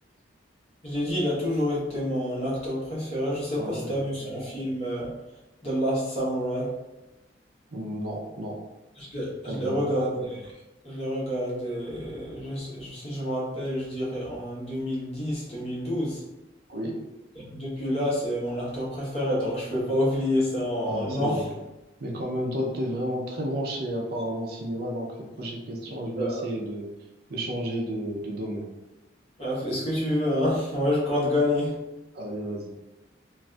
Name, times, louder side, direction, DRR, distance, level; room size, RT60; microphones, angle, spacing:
voice 1, 0.8-5.1 5.6-6.7 9.0-10.5 10.8-16.2 17.4-21.4 26.2-26.4 29.4-31.8, left 1 dB, 30° left, -6 dB, 1.0 m, -28 dB
voice 2, 3.5-3.9 7.7-8.6 9.4-9.9 16.7-17.0 20.8-21.5 22.0-25.1 25.4-26.9 27.3-28.7 32.1-32.7, equal, 50° right, -1 dB, 0.5 m, -32 dB
2.5 x 2.4 x 3.2 m, 1.0 s
head